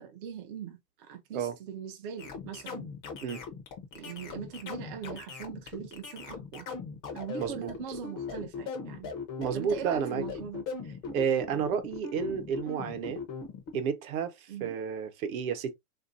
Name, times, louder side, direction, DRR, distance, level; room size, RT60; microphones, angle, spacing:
voice 1, 0.0-2.9 3.9-6.7 7.1-9.1 9.5-10.6 14.5-14.8, right 8 dB, 40° right, 0.4 m, -41 dB
sound 1, 2.2-13.8, left 5 dB, 20° left, 0.4 m, -39 dB
voice 2, 7.4-7.7 9.4-10.2 11.1-13.2 13.7-15.7, right 7 dB, 65° right, 0.9 m, -31 dB
3.3 x 2.5 x 2.5 m
supercardioid pair, 160°, 46 cm